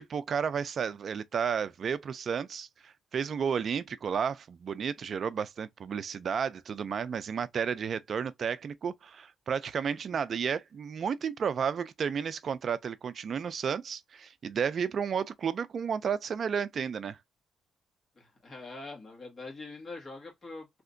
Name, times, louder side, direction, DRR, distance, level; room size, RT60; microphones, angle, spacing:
voice 1, 0.0-17.2, right 7 dB, 45° right, 0.3 m, -32 dB
voice 2, 18.2-20.8, left 3 dB, 30° left, 1.6 m, -44 dB
3.3 x 2.8 x 2.5 m
cardioid pair, 135°, 0 cm